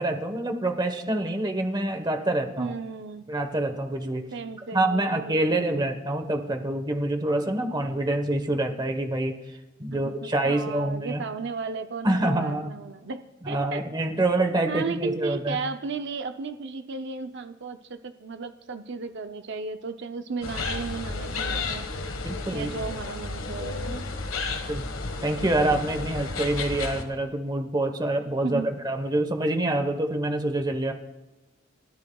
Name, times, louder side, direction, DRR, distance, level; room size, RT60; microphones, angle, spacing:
voice 1, 0.0-2.7 3.3-4.3 4.7-11.2 12.0-12.7 13.4-15.6 22.2-22.7 24.7-24.9 25.2-30.9, right 1 dB, 20° right, 5 dB, 1.1 m, -26 dB
voice 2, 2.6-3.2 4.3-5.9 9.9-13.8 14.7-21.9 22.5-24.0 28.4-28.8, right 4 dB, 60° right, 8 dB, 0.6 m, -35 dB
sound 1, 20.4-27.0, left 3 dB, 80° left, 1.5 m, -32 dB
29.5 x 13.5 x 2.3 m, 1.0 s
head